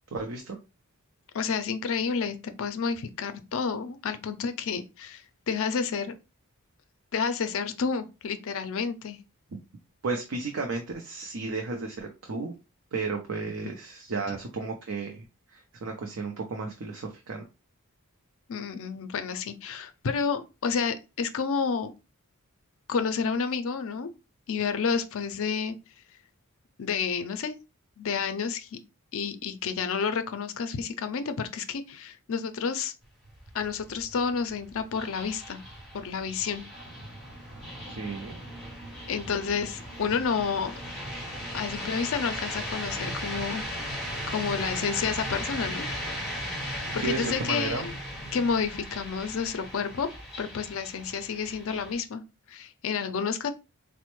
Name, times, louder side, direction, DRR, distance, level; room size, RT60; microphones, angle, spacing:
voice 1, 0.1-0.6 10.0-12.5 12.9-15.2 15.5-17.5 37.9-38.4 46.9-47.9, right 4 dB, 60° right, 0.5 m, -33 dB
voice 2, 1.3-6.1 7.1-9.2 18.5-21.9 22.9-24.1 24.5-25.8 26.8-27.6 28.0-28.8 29.1-32.9 33.5-35.6 35.9-36.6 39.1-40.7 41.5-43.6 44.3-45.9 46.9-48.0 48.3-50.1 50.4-52.2 52.5-53.5, left 6 dB, 60° left, 0.5 m, -30 dB
sound 1, 33.0-52.0, equal, ahead, 1.1 m, -37 dB
4.1 x 2.1 x 3.0 m
head